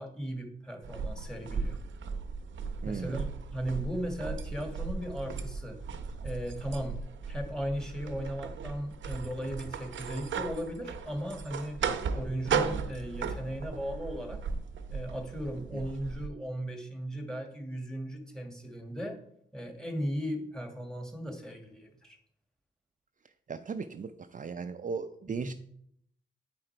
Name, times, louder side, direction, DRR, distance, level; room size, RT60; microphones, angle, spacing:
voice 1, 0.0-1.8 2.8-5.8 6.2-7.0 7.3-14.4 14.9-19.2 19.5-22.2 25.4-25.5, equal, 5° left, 4 dB, 1.7 m, -37 dB
sound 1, 0.8-16.3, right 5 dB, 85° right, 0.7 m, -36 dB
voice 2, 2.8-3.2 11.8-12.0 15.7-15.8 23.5-25.5, right 5 dB, 45° right, 9 dB, 0.5 m, -37 dB
9.2 x 4.9 x 4.4 m, 0.67 s
cardioid pair, 75°, 19 cm